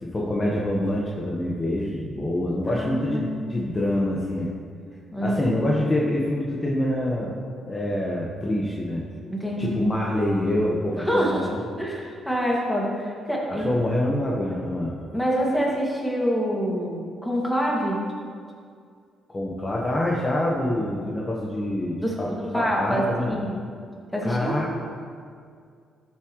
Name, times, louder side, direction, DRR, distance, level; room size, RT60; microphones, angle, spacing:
voice 1, 0.0-4.5 5.2-7.3 7.7-9.0 9.6-11.6 13.6-14.9 19.3-23.3 24.2-24.8, left 1 dB, 25° left, -4 dB, 1.3 m, -26 dB
voice 2, 2.7-3.5 5.1-5.6 9.3-10.0 11.0-11.5 11.8-13.8 15.1-18.0 22.0-23.6 24.1-24.6, equal, 5° left, -3 dB, 2.3 m, -26 dB
12.5 x 7.3 x 3.2 m, 2.2 s
cardioid pair, 90°, 0 cm